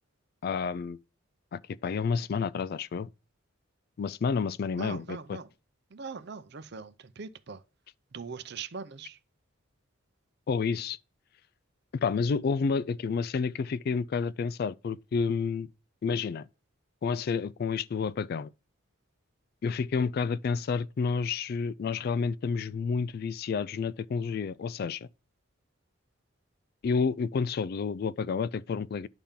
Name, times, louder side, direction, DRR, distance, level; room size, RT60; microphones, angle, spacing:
voice 1, 0.4-1.0 1.5-3.1 4.0-5.4 10.5-11.0 12.0-15.7 16.0-16.5 17.0-18.5 19.6-25.1 26.8-29.1, left 5 dB, 50° left, 0.3 m, -30 dB
voice 2, 4.8-5.5 5.9-7.6 8.1-9.2, right 5 dB, 55° right, 0.6 m, -41 dB
10.0 x 3.6 x 5.6 m
head